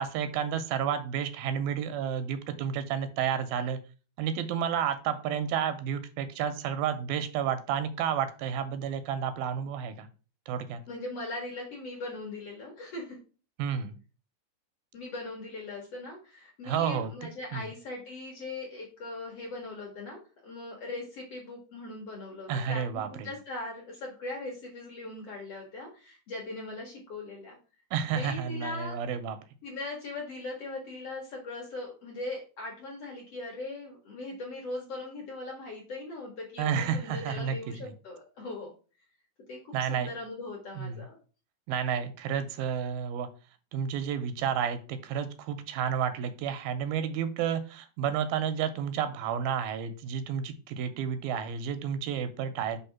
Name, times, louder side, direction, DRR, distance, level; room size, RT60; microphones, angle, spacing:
voice 1, 0.0-3.8 4.2-10.1 10.5-10.8 13.6-13.9 16.6-17.1 17.5-17.7 22.5-23.3 27.9-29.4 36.6-37.9 39.7-40.1 40.8-41.0 41.7-43.3 43.7-52.8, right 8 dB, 85° right, 10 dB, 2.4 m, -31 dB
voice 2, 10.9-13.2 14.9-27.6 28.2-29.0 29.6-38.7 39.5-41.2, left 2 dB, 60° left, -1 dB, 1.7 m, -40 dB
5.5 x 3.4 x 5.8 m, 0.35 s
omnidirectional pair, 4.3 m